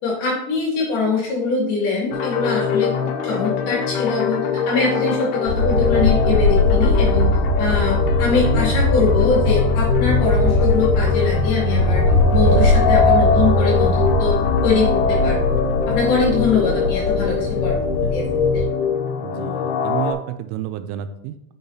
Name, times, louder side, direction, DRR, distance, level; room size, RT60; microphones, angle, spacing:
voice 1, 0.0-2.9 3.2-4.4 4.7-7.3 7.6-12.0 12.3-14.3 14.6-15.6 15.9-17.8 18.1-18.3 18.5-18.7, left 4 dB, 60° left, -3 dB, 3.7 m, -22 dB
sound 1, 2.1-20.1, left 5 dB, 85° left, 3.2 m, -23 dB
sound 2, 5.5-18.7, left 2 dB, 30° right, 3.2 m, -20 dB
voice 2, 19.2-21.5, right 11 dB, 85° right, 9 dB, 3.0 m, -30 dB
8.8 x 6.7 x 2.7 m, 0.78 s
omnidirectional pair, 5.6 m